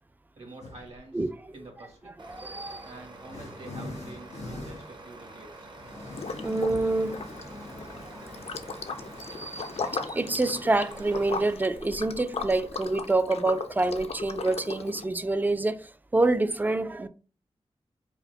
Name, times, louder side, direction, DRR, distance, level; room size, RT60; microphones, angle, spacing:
voice 1, 0.3-2.3 2.8-5.7, right 2 dB, 65° right, 1.5 m, -47 dB
sound 1, 0.6-1.1 2.0-15.5, left 2 dB, 85° left, 1.3 m, -45 dB
Truck, 2.2-11.5, right 2 dB, 45° right, 0.7 m, -47 dB
voice 2, 2.3-2.9 6.4-7.2 7.5-8.3 9.2-17.1, right 2 dB, 15° right, 0.3 m, -27 dB
Liquid, 6.1-6.8 7.1-15.0, left 4 dB, 65° left, 0.5 m, -37 dB
5.0 x 2.1 x 3.2 m
wide cardioid pair, 100°, 11 cm